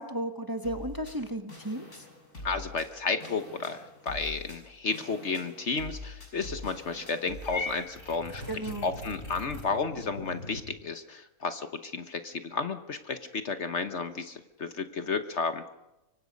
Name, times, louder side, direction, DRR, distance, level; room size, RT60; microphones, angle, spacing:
voice 1, 0.0-2.0 8.5-8.9, right 1 dB, 15° right, 6 dB, 1.2 m, -34 dB
sound 1, 0.6-7.5, left 1 dB, 85° left, 6.6 m, -45 dB
voice 2, 2.4-15.7, left 4 dB, 50° left, 9 dB, 1.3 m, -32 dB
sound 2, 3.3-4.7 5.0-5.5 6.0-6.3 6.6-10.6, left 1 dB, 60° right, 8.3 m, -46 dB
Purr / Meow, 7.5-9.7, left 3 dB, 35° left, 4.5 m, -39 dB
25.0 x 24.5 x 5.3 m, 0.92 s
omnidirectional pair, 1.6 m